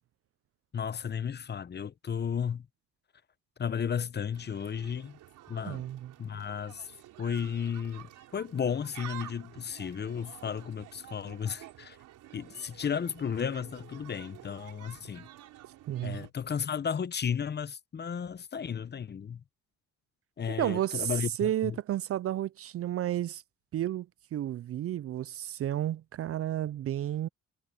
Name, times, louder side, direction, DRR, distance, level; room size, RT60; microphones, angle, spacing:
voice 1, 0.7-2.7 3.6-5.2 5.5-5.8 6.2-6.9 7.2-12.0 12.3-15.3 16.0-19.4 20.4-21.8, left 7 dB, 35° left, 0.7 m, -34 dB
sound 1, 4.3-16.3, right 14 dB, 90° right, 4.1 m, -50 dB
voice 2, 5.7-6.1 15.9-16.3 20.6-21.1 21.4-23.4 23.7-27.3, right 12 dB, 50° right, 0.4 m, -32 dB
cardioid pair, 90°, 30 cm